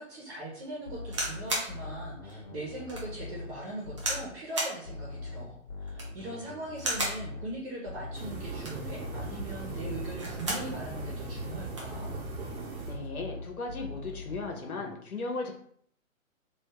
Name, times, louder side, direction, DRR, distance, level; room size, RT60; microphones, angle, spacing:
voice 1, 0.0-12.1, right 1 dB, 40° right, -4 dB, 1.1 m, -40 dB
sound 1, 0.9-4.4 4.9-8.4 8.9-12.4 12.9-14.9, left 3 dB, 45° left, 1.1 m, -42 dB
sound 2, 1.0-1.7 2.3-2.4 2.9-3.1 4.0-4.3 4.5-4.8 5.8-6.2 6.8-7.2 8.4-8.9 10.0-10.7 11.1-11.2 11.4-11.9 12.8-13.0, right 1 dB, 25° right, 0.5 m, -33 dB
sound 3, 8.1-13.1, right 3 dB, 85° right, 1.1 m, -39 dB
voice 2, 12.9-15.5, left 3 dB, 90° left, 2 dB, 1.0 m, -36 dB
3.4 x 2.7 x 2.9 m, 0.64 s
hypercardioid pair, 150°, 42 cm